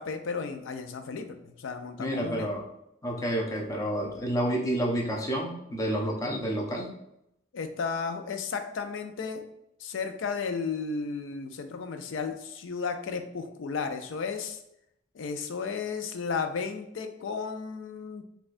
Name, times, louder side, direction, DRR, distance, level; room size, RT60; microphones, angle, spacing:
voice 1, 0.0-2.5 7.5-9.4 9.8-14.6 15.1-18.2, left 5 dB, 80° left, 7 dB, 0.4 m, -34 dB
voice 2, 2.0-2.6 3.0-6.9, equal, 20° left, -1 dB, 0.5 m, -29 dB
4.2 x 2.3 x 2.5 m, 0.79 s
head